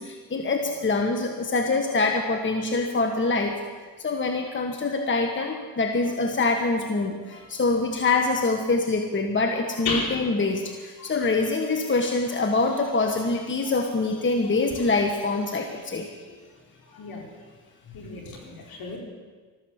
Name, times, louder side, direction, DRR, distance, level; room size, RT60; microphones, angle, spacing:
voice 1, 0.0-3.6 4.0-16.2, left 3 dB, 30° left, 4 dB, 1.5 m, -25 dB
voice 2, 9.8-10.2 16.3-16.4 16.9-17.2 17.9-19.0, left 3 dB, 60° left, 0 dB, 4.5 m, -32 dB
13.5 x 13.5 x 7.2 m, 1.5 s
cardioid pair, 80°, 39 cm